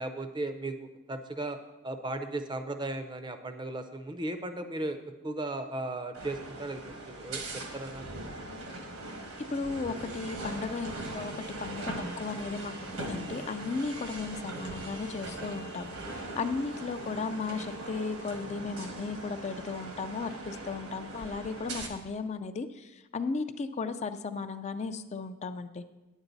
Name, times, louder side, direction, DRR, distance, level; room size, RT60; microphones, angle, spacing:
voice 1, 0.0-1.6 1.8-5.0 5.2-7.4 7.7-8.0, right 2 dB, 20° right, 9 dB, 0.5 m, -36 dB
sound 1, 6.1-21.9, right 2 dB, 75° right, 1.4 m, -40 dB
voice 2, 9.4-11.3 11.6-25.8, left 4 dB, 30° left, 10 dB, 0.3 m, -35 dB
9.6 x 8.1 x 4.0 m, 1.1 s
head